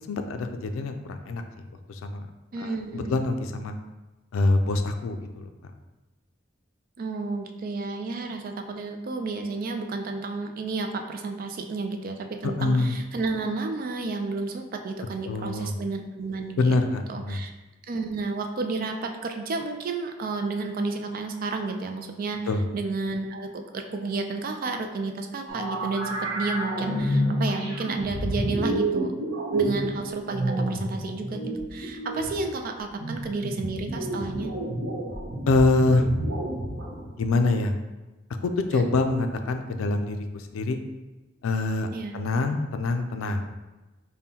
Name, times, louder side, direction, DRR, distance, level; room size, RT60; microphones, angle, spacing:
voice 1, 0.1-1.4 1.9-2.3 2.6-3.8 4.3-5.7 12.4-13.0 15.3-15.7 16.6-17.4 22.5-22.6 35.5-36.1 37.2-37.7 38.4-40.8 41.4-43.5, left 3 dB, 85° left, 7 dB, 0.4 m, -25 dB
voice 2, 2.5-3.2 7.0-16.8 17.1-17.5 17.9-29.1 29.5-31.4 31.7-34.5 38.7-38.9 41.9-42.2, right 3 dB, 45° right, 5 dB, 0.4 m, -31 dB
sound 1, 25.5-37.3, right 1 dB, 85° right, 0.8 m, -29 dB
5.3 x 2.2 x 2.8 m, 1.1 s
head